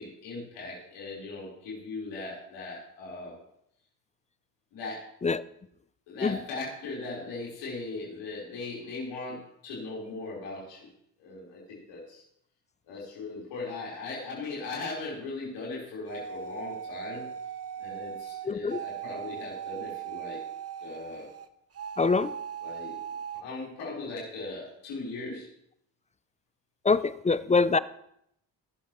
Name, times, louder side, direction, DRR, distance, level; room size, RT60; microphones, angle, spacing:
voice 1, 0.0-3.4 4.7-5.0 6.1-10.9 11.2-12.2 12.8-17.3 17.8-20.4 20.8-21.3 22.6-23.0 23.3-25.5, left 3 dB, 90° left, -5 dB, 4.5 m, -38 dB
sound 1, 16.1-21.5 21.7-23.4, right 8 dB, 35° right, 0.9 m, -39 dB
voice 2, 18.5-18.8 22.0-22.3 26.9-27.8, left 4 dB, 20° left, 17 dB, 0.4 m, -24 dB
21.0 x 7.4 x 3.1 m, 0.75 s
supercardioid pair, 65°, 41 cm